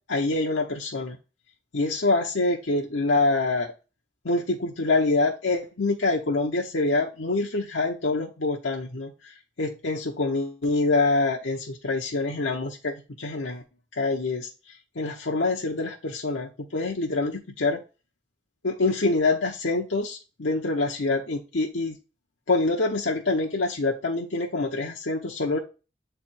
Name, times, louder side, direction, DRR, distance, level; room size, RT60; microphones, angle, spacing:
voice 1, 0.1-1.2 1.7-3.7 4.2-9.1 9.6-13.6 14.0-14.5 15.0-17.8 18.6-22.0 22.5-25.6, left 3 dB, 85° left, -1 dB, 0.9 m, -25 dB
7.4 x 3.4 x 4.3 m, 0.30 s
head